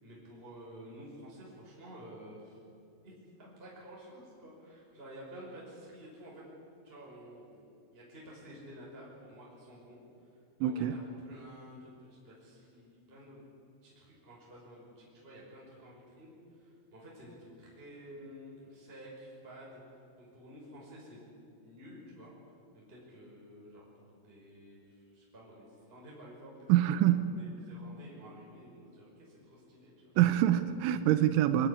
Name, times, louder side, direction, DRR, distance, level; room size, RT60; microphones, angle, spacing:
voice 1, 0.0-2.6 3.0-6.5 6.8-13.4 13.8-19.8 20.2-21.2 21.6-22.3 22.7-29.9, equal, 10° right, -4 dB, 5.3 m, -51 dB
voice 2, 10.6-10.9 26.7-27.3 30.2-31.7, right 12 dB, 90° right, 11 dB, 3.3 m, -25 dB
24.5 x 16.5 x 10.0 m, 2.5 s
omnidirectional pair, 5.5 m